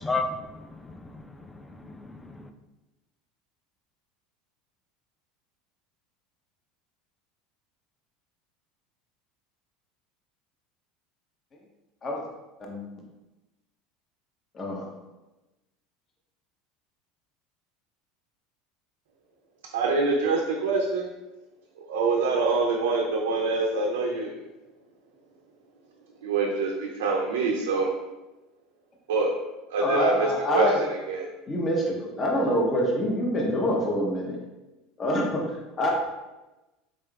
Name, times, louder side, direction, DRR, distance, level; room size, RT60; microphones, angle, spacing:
voice 1, 0.0-2.5, left 3 dB, 10° left, 6 dB, 0.3 m, -34 dB
voice 2, 14.5-14.9 29.8-30.8 31.5-34.4 35.0-35.4 35.8-35.9, equal, 35° left, -1 dB, 0.8 m, -25 dB
voice 3, 19.7-21.1 21.8-24.3 26.2-27.9 29.1-29.3 29.7-30.3 30.5-31.3, right 3 dB, 85° right, -1 dB, 0.4 m, -25 dB
3.7 x 3.5 x 2.3 m, 1.1 s
hypercardioid pair, 95°, 0 cm